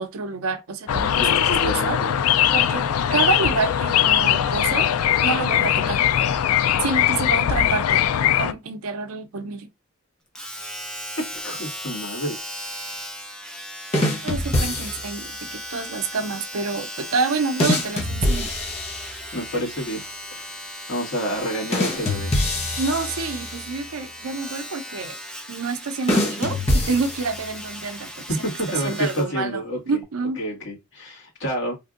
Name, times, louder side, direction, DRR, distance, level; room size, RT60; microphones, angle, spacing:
voice 1, 0.0-2.0 2.5-4.9 5.2-6.0 6.8-8.0 8.4-9.7 14.2-18.5 22.8-25.2 25.5-28.3 28.7-30.4, right 4 dB, 85° right, 0.6 m, -28 dB
sound 1, 0.9-8.5, left 10 dB, 90° left, 0.3 m, -20 dB
voice 2, 1.2-2.1 11.2-12.4 19.3-20.6 20.9-22.3 28.3-30.0 30.4-31.7, equal, 60° left, 1.8 m, -29 dB
Domestic sounds home sounds, 10.3-29.3 30.0-30.1, equal, 5° left, 0.5 m, -37 dB
sound 2, 13.9-15.3 17.6-19.6 21.7-23.9 26.1-27.7, left 1 dB, 30° left, 0.9 m, -25 dB
3.3 x 2.6 x 2.4 m
head